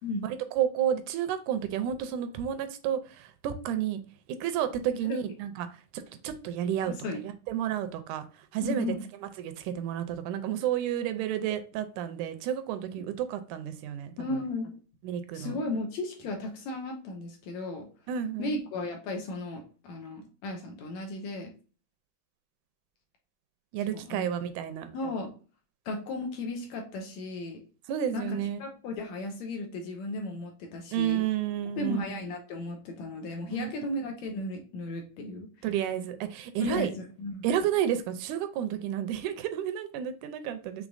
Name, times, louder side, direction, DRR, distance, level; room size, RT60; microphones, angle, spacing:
voice 1, 0.2-4.0 4.4-5.7 5.9-6.9 7.5-8.3 8.5-8.9 9.4-14.1 15.0-15.5 18.1-18.5 23.7-24.9 27.9-28.6 30.9-32.2 33.5-33.7 35.6-36.9 37.4-40.9, right 10 dB, 80° right, 2.0 m, -31 dB
voice 2, 6.8-7.2 8.6-9.1 14.2-14.7 15.3-17.9 18.4-21.5 23.9-24.3 24.9-25.3 25.9-27.6 28.1-31.3 31.8-35.5 36.6-37.5, left 2 dB, 75° left, 2.0 m, -35 dB
6.0 x 3.5 x 2.4 m
omnidirectional pair, 3.6 m